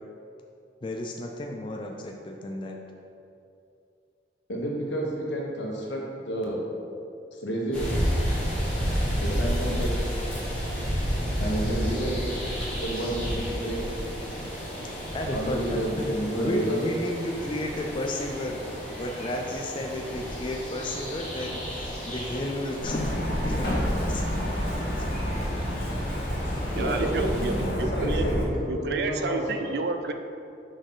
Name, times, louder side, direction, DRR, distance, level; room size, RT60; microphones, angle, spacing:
voice 1, 0.8-2.8 15.1-16.1 16.4-18.6 18.9-24.2 25.0-25.1, left 1 dB, 25° left, 2 dB, 0.4 m, -33 dB
voice 2, 4.5-6.6 7.3-8.0 9.2-10.1 11.4-12.4 12.8-13.8 15.3-16.8 26.7-29.7, right 1 dB, 80° left, -2 dB, 1.3 m, -30 dB
sound 1, 7.7-27.7, equal, 5° left, 1.5 m, -32 dB
Truck, 22.8-28.4, equal, 50° left, 1.2 m, -29 dB
voice 3, 26.3-28.2 28.7-30.1, right 3 dB, 60° right, 6 dB, 0.4 m, -31 dB
6.4 x 4.9 x 3.8 m, 2.6 s
head